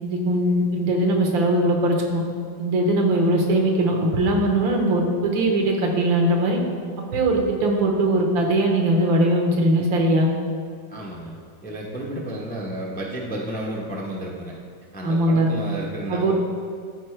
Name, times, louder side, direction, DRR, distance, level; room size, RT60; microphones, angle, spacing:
voice 1, 0.0-2.2 2.6-6.6 7.1-10.3 15.0-15.5 16.1-16.3, right 1 dB, 75° right, 1 dB, 1.8 m, -20 dB
voice 2, 10.9-11.3 11.6-14.5 14.9-16.3, right 1 dB, 15° left, -3 dB, 0.3 m, -32 dB
13.5 x 4.8 x 3.3 m, 2.2 s
omnidirectional pair, 2.1 m